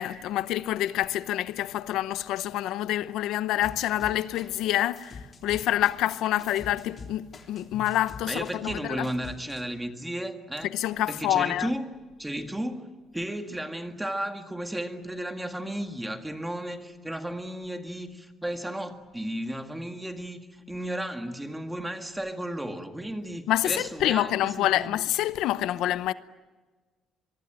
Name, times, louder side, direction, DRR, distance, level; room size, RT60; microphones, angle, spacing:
voice 1, 0.0-9.1 10.6-11.7 23.5-26.1, left 13 dB, 80° left, 0.8 m, -27 dB
sound 1, 3.6-4.7 4.9-9.6, left 4 dB, 30° left, 3.6 m, -44 dB
voice 2, 8.3-10.7 11.1-11.8 12.2-25.0, right 1 dB, 5° right, 1.8 m, -34 dB
24.0 x 24.0 x 9.1 m
cardioid pair, 155°, 0 cm